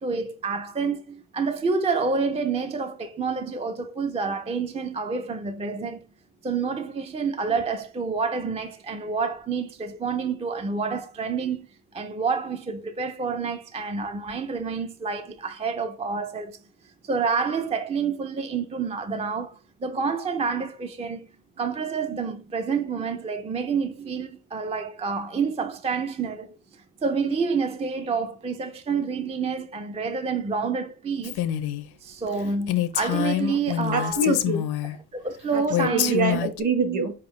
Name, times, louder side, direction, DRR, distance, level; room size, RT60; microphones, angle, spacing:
voice 1, 0.0-6.0 6.4-11.7 11.9-16.6 17.0-21.3 21.6-26.6 27.0-31.4 32.0-34.3 35.1-36.4, right 5 dB, 20° right, 0.3 m, -28 dB
Female speech woman speaking, 31.2-31.9 32.3-32.4 32.7-35.0 35.7-36.6, left 12 dB, 80° left, 0.6 m, -26 dB
voice 2, 33.9-34.7 35.5-37.1, right 3 dB, 50° right, 1.3 m, -25 dB
4.6 x 3.6 x 3.1 m
cardioid pair, 125°, 38 cm